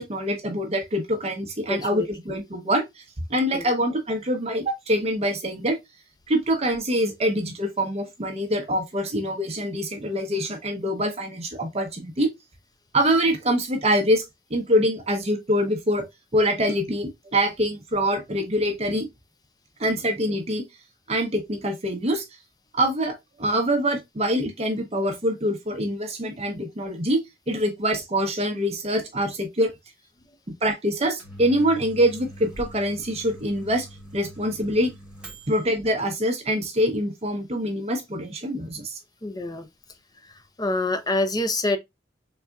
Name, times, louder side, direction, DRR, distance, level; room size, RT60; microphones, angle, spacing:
voice 1, 0.0-3.0 3.3-5.8 6.3-12.3 12.9-16.0 16.3-19.1 19.8-20.6 21.1-22.3 22.7-27.2 27.5-29.7 30.6-33.9 34.1-34.9 35.5-39.0, equal, 35° right, 0.8 m, -25 dB
voice 2, 1.7-2.1 3.5-3.7 39.2-39.7 40.2-41.8, left 2 dB, 20° left, 0.6 m, -26 dB
Microwave oven, 31.0-35.8, right 1 dB, 5° right, 1.4 m, -43 dB
4.1 x 3.5 x 2.2 m
head